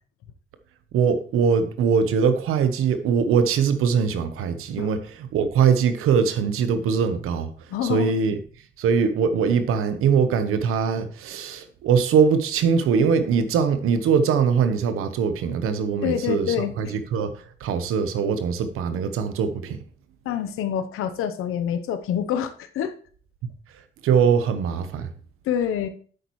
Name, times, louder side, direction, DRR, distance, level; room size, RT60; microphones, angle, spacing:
voice 1, 0.9-8.4 8.8-19.8 23.7-25.1, right 6 dB, 90° right, 1.0 m, -22 dB
voice 2, 7.7-8.1 16.0-16.7 20.2-22.9 25.4-25.9, left 9 dB, 90° left, 0.9 m, -26 dB
10.0 x 8.3 x 3.1 m
supercardioid pair, 55°, 21 cm